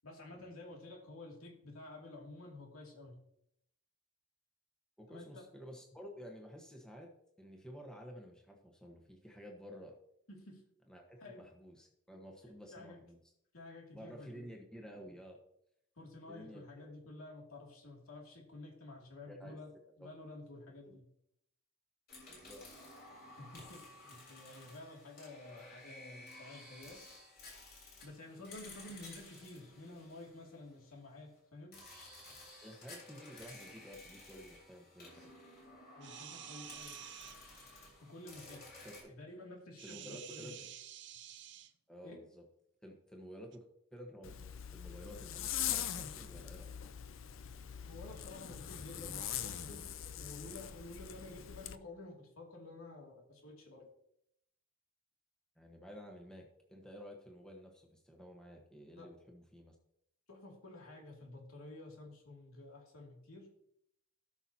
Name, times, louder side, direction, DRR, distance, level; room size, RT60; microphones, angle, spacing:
voice 1, 0.0-3.2 5.1-5.4 10.3-10.6 11.2-11.4 12.4-13.0 13.5-14.5 16.0-19.7 20.0-21.0 23.4-23.8 24.1-27.0 28.0-31.8 36.0-37.0 38.0-38.6 39.1-40.5 42.0-42.2 47.8-53.9 59.0-59.1 60.3-63.5, left 2 dB, 85° left, -1 dB, 2.5 m, -51 dB
voice 2, 5.0-7.1 7.4-10.0 10.9-13.2 13.9-15.4 16.3-16.7 19.3-19.6 20.0-20.1 20.7-21.0 22.3-22.6 32.6-35.3 38.8-39.1 39.8-40.6 41.9-42.4 42.8-43.6 43.9-46.8 55.6-59.8, equal, 5° left, 0 dB, 1.2 m, -52 dB
sound 1, 22.1-30.9 31.7-39.0, left 2 dB, 45° left, 3.5 m, -54 dB
sound 2, 36.0-37.4 39.8-41.7 43.5-43.6, right 11 dB, 55° right, 0.6 m, -50 dB
Zipper (clothing), 44.2-51.8, left 10 dB, 70° left, 0.5 m, -42 dB
17.0 x 6.0 x 2.8 m, 0.74 s
head